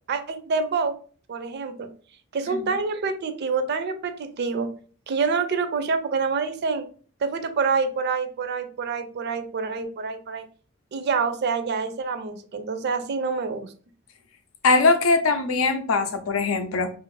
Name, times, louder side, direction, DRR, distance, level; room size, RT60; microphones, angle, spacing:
voice 1, 0.1-0.9 1.3-1.9 2.3-4.7 5.1-6.8 7.2-10.5 10.9-13.7, right 4 dB, 55° right, 9 dB, 0.4 m, -27 dB
voice 2, 14.6-16.9, left 3 dB, 85° left, 8 dB, 0.5 m, -21 dB
2.7 x 2.5 x 3.1 m, 0.42 s
head